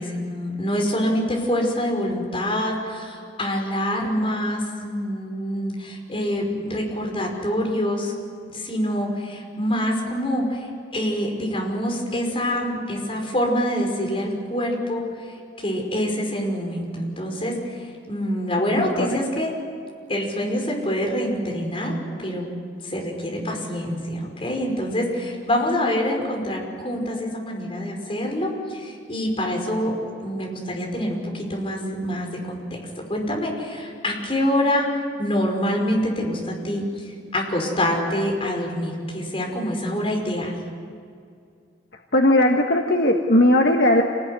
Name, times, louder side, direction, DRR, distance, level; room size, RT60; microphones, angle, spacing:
voice 1, 0.0-8.1 8.4-15.0 15.6-19.5 20.1-22.5 22.8-29.9 30.2-32.8 33.1-40.5, equal, 30° left, 0 dB, 5.5 m, -26 dB
voice 2, 42.1-44.0, left 1 dB, 60° left, 2 dB, 1.5 m, -17 dB
27.5 x 19.5 x 9.7 m, 2.3 s
head